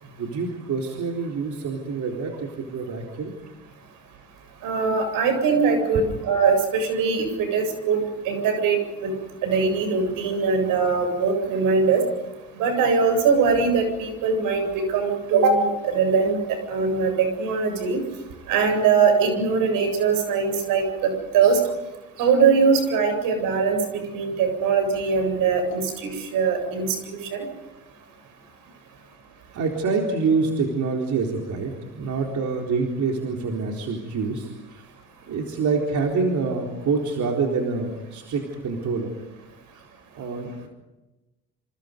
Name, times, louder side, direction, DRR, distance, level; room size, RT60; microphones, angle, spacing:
voice 1, 0.0-3.3 29.5-34.8 35.3-39.1 39.7-39.9 40.1-40.7, right 4 dB, 55° right, 0 dB, 4.1 m, -26 dB
voice 2, 4.6-9.1 9.4-12.0 12.6-18.0 18.5-21.6 22.2-27.4, right 5 dB, 75° right, 6 dB, 7.9 m, -22 dB
28.0 x 28.0 x 5.3 m, 1.1 s
supercardioid pair, 85°, 34 cm